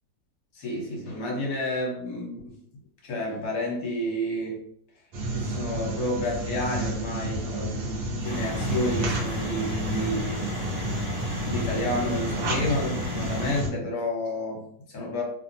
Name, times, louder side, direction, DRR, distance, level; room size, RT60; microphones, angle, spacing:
voice 1, 0.5-2.6 3.0-4.6 5.3-10.4 11.4-15.2, left 1 dB, 60° left, -2 dB, 1.3 m, -30 dB
sound 1, 5.1-13.7, right 1 dB, 75° right, 1.2 m, -31 dB
sound 2, 8.2-13.6, left 2 dB, 35° left, 0.7 m, -34 dB
3.2 x 2.0 x 2.6 m, 0.66 s
omnidirectional pair, 2.0 m